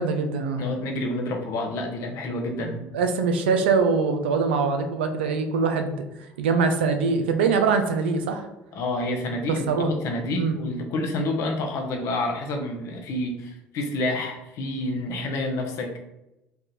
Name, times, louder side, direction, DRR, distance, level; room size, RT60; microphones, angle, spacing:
voice 1, 0.0-0.6 2.6-6.0 6.4-8.5 9.5-9.9 10.4-10.5, right 5 dB, 90° right, 6 dB, 0.5 m, -23 dB
voice 2, 0.5-2.9 8.7-16.0, left 2 dB, 65° left, 3 dB, 0.8 m, -29 dB
3.4 x 2.5 x 4.2 m, 0.94 s
hypercardioid pair, 75°, 6 cm